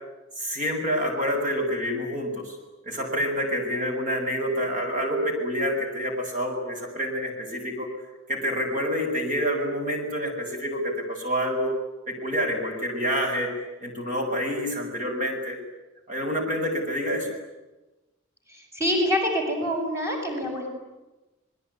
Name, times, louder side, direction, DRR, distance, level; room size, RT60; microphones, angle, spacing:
voice 1, 0.4-2.6 2.8-7.9 8.3-11.7 12.1-13.5 13.8-15.6 16.1-17.3, equal, 40° right, 3 dB, 7.3 m, -27 dB
voice 2, 18.5-20.7, equal, 15° right, 1 dB, 7.4 m, -26 dB
26.0 x 22.5 x 9.8 m, 1.1 s
head